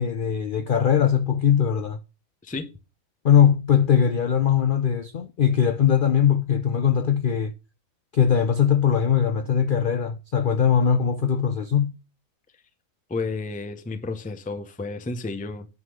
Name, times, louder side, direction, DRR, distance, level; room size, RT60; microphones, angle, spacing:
voice 1, 0.0-2.0 3.2-7.5 8.1-11.9, left 8 dB, 55° left, 0.5 m, -20 dB
voice 2, 13.1-15.7, left 3 dB, 10° left, 0.5 m, -31 dB
9.5 x 3.7 x 6.3 m
omnidirectional pair, 1.6 m